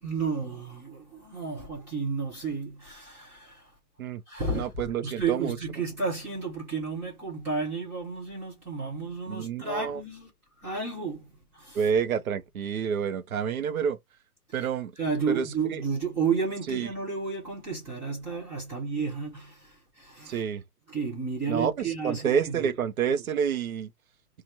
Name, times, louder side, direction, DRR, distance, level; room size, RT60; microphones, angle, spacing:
voice 1, 0.0-3.7 4.3-4.7 5.0-10.3 10.6-11.3 11.5-11.8 15.0-20.4 20.9-22.7, right 5 dB, 5° right, 0.5 m, -32 dB
voice 2, 4.5-5.6 9.3-10.0 11.7-14.0 14.5-14.9 15.3-15.8 16.7-16.9 20.3-20.6 21.5-23.9, right 7 dB, 65° right, 0.8 m, -28 dB
3.1 x 2.4 x 4.1 m
figure-of-eight pair, 130°, 45 cm